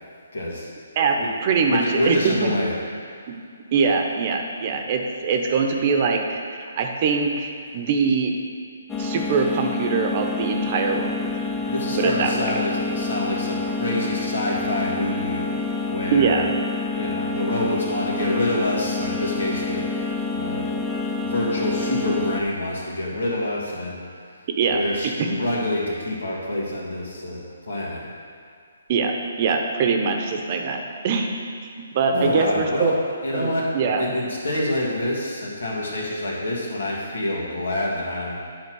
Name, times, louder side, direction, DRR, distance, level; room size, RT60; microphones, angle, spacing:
voice 1, 0.3-0.7 1.2-1.3 1.7-2.7 11.7-16.4 17.0-19.9 20.3-20.7 21.2-24.0 24.7-28.0 32.1-32.9 33.2-38.4, left 1 dB, 85° left, -4 dB, 2.5 m, -27 dB
voice 2, 1.4-2.5 3.3-3.4 3.7-6.4 6.8-8.3 9.0-11.3 12.0-12.6 16.1-16.5 24.6-24.8 25.2-25.3 28.9-29.1 29.4-31.3 31.9-32.9 33.3-34.0, right 5 dB, 35° right, 3 dB, 0.9 m, -22 dB
sound 1, 8.9-22.4, left 3 dB, 10° left, 0.5 m, -28 dB
9.6 x 4.4 x 6.3 m, 2.2 s
hypercardioid pair, 155°, 0 cm